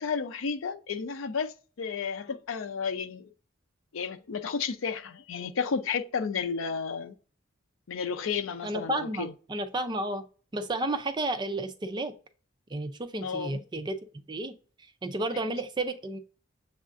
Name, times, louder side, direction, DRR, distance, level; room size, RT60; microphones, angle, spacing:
voice 1, 0.0-3.3 3.9-7.1 7.9-9.3 13.2-13.6 15.3-15.5, left 5 dB, 80° left, 0.5 m, -32 dB
voice 2, 8.6-10.2 10.5-12.1 12.7-14.5 15.0-16.2, right 2 dB, 20° right, 0.4 m, -32 dB
7.2 x 2.4 x 2.5 m
head